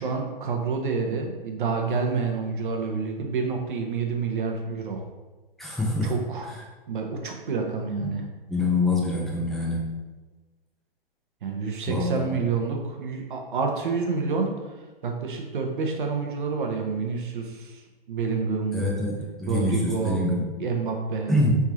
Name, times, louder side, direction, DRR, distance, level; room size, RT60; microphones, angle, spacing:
voice 1, 0.0-5.0 6.0-6.5 6.9-8.2 11.4-14.5 15.0-17.8 18.1-18.8 19.5-20.2 20.6-21.3, right 4 dB, 60° right, 2 dB, 0.9 m, -28 dB
voice 2, 5.6-6.1 8.0-8.1 8.5-9.8 11.9-12.3 18.7-20.4 21.3-21.6, left 2 dB, ahead, -4 dB, 0.5 m, -25 dB
4.5 x 3.5 x 2.9 m, 1.2 s
figure-of-eight pair, 120°, 29 cm